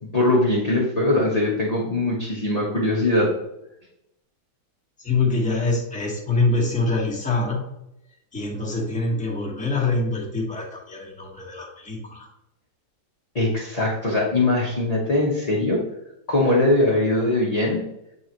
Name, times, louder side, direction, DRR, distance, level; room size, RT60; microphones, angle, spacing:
voice 1, 0.1-3.3 13.3-15.8 16.3-17.9, left 2 dB, 30° left, -5 dB, 0.7 m, -21 dB
voice 2, 5.0-7.7 8.3-12.3, left 3 dB, 5° left, -3 dB, 1.0 m, -25 dB
8.3 x 3.9 x 3.0 m, 0.85 s
omnidirectional pair, 2.3 m